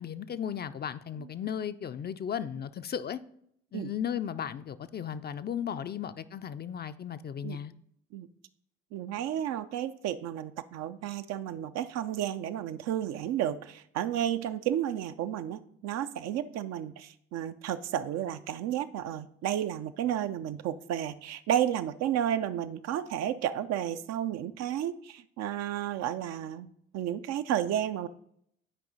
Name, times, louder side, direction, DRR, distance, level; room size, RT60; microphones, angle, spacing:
voice 1, 0.0-3.2 3.7-7.7, left 8 dB, 35° left, 0.4 m, -35 dB
voice 2, 8.9-26.7 26.9-28.1, right 10 dB, 60° right, 0.5 m, -32 dB
8.9 x 4.8 x 4.0 m
hypercardioid pair, 45°, 30 cm